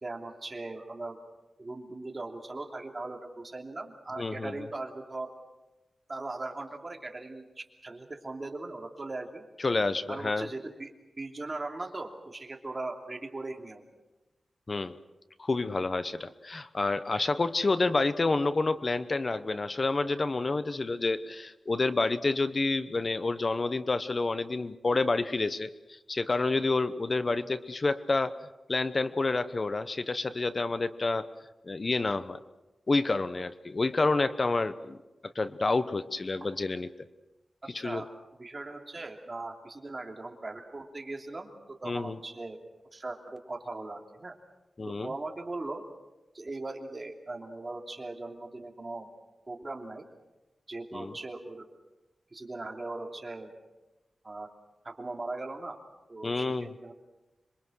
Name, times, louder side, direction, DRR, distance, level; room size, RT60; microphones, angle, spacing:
voice 1, 0.0-1.2 1.6-5.3 6.1-9.4 10.1-10.9 11.2-13.8 37.8-38.1 38.4-41.5 41.8-42.6 42.9-44.4 44.9-45.8 46.3-49.1 49.5-50.1 50.7-51.7 52.3-53.5 54.2-54.5 54.8-55.8 56.1-56.9, right 2 dB, 30° right, 3 dB, 2.9 m, -39 dB
voice 2, 4.2-4.5 9.6-10.5 14.7-15.0 15.4-28.4 28.7-31.3 31.6-32.4 32.9-35.0 35.2-36.9 37.7-38.0 41.8-42.2 44.8-45.1 50.9-51.1 56.2-56.7, left 3 dB, 35° left, 12 dB, 1.0 m, -29 dB
26.5 x 23.0 x 6.4 m, 1.1 s
wide cardioid pair, 110°, 0 cm